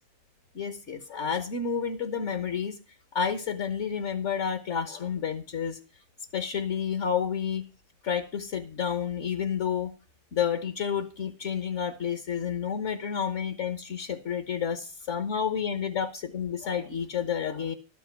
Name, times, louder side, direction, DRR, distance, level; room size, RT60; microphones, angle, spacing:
voice 1, 0.5-2.7 3.1-5.8 6.3-7.6 8.0-9.9 10.3-17.7, left 7 dB, 60° left, 10 dB, 1.4 m, -30 dB
12.5 x 8.3 x 5.8 m, 0.34 s
omnidirectional pair, 1.4 m